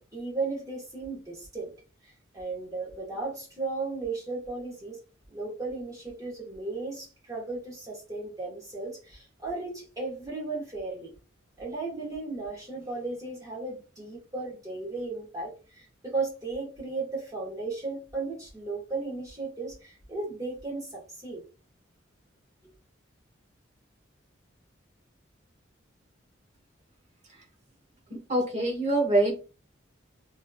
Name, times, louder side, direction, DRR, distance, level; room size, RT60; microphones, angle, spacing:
voice 1, 0.0-1.7 2.0-5.0 5.3-11.1 11.6-21.4, right 3 dB, 20° right, 1.4 m, -35 dB
voice 2, 28.1-29.3, right 2 dB, 35° right, 1.1 m, -25 dB
3.7 x 3.2 x 2.3 m
head